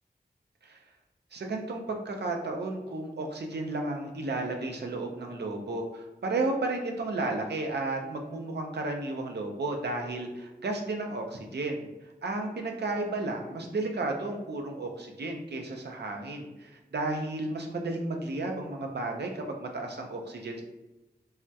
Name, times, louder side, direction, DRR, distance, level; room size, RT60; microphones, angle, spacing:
voice 1, 1.3-11.9 12.2-20.6, right 2 dB, 85° right, 2 dB, 0.5 m, -33 dB
3.4 x 2.2 x 2.7 m, 1.0 s
wide cardioid pair, 55°, 17 cm